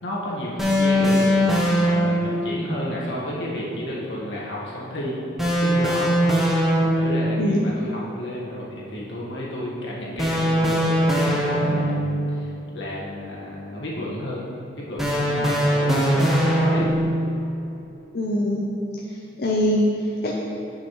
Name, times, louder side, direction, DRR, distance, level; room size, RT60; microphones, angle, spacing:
voice 1, 0.0-5.2 5.6-6.1 6.8-14.4 14.8-16.9, equal, 85° left, -5 dB, 1.5 m, -32 dB
sound 1, 0.6-2.4 5.4-7.3 10.2-12.1 15.0-17.2, equal, ahead, 0.8 m, -20 dB
voice 2, 7.4-7.7 18.1-18.7 19.1-20.3, left 1 dB, 55° left, -3 dB, 0.6 m, -23 dB
9.3 x 5.7 x 3.1 m, 2.9 s
head